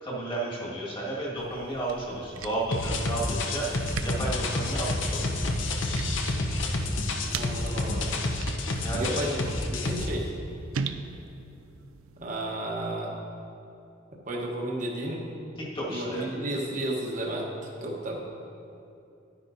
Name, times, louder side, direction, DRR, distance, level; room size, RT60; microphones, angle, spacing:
voice 1, 0.0-3.7 4.0-5.5 8.8-9.2 15.6-16.2, right 2 dB, 25° left, -5 dB, 1.8 m, -32 dB
sound 1, 1.4-12.6, right 5 dB, 85° right, 0.4 m, -41 dB
sound 2, 2.7-10.1, left 2 dB, 65° left, 0.7 m, -29 dB
voice 2, 7.3-8.1 8.9-10.3 12.2-13.1 14.3-15.2 15.9-17.5 17.8-18.2, right 1 dB, 40° right, -2 dB, 1.0 m, -32 dB
11.0 x 9.9 x 2.7 m, 2.7 s
head